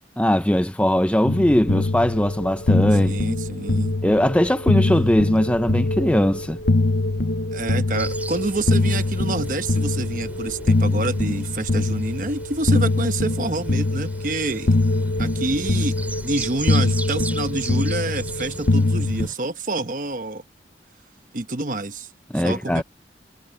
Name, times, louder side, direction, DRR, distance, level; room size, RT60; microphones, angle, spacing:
voice 1, 0.2-3.2 4.0-6.6 22.3-22.8, equal, 5° left, 0.6 m, -20 dB
sound 1, 1.3-19.3, left 2 dB, 70° left, 1.0 m, -23 dB
voice 2, 3.0-4.0 7.5-14.8 15.2-15.9 16.2-20.4 21.3-22.1 22.4-22.8, right 2 dB, 45° right, 1.1 m, -27 dB
sound 2, 8.0-19.3, right 1 dB, 10° right, 6.4 m, -38 dB
head